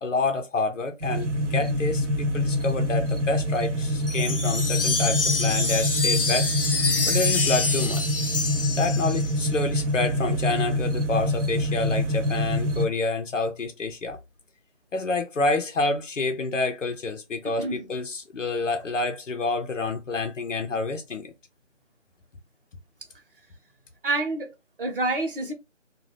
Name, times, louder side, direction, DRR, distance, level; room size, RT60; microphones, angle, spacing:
voice 1, 0.0-6.5 7.1-8.0 8.8-14.2 14.9-21.3, left 3 dB, 90° left, 0.7 m, -28 dB
sound 1, 1.0-12.9, equal, 75° right, 0.9 m, -26 dB
sound 2, 4.1-9.4, left 4 dB, 50° left, 0.6 m, -27 dB
voice 2, 17.6-17.9 24.0-25.5, right 2 dB, 50° right, 0.9 m, -28 dB
2.6 x 2.3 x 3.2 m
figure-of-eight pair, 165°, 36 cm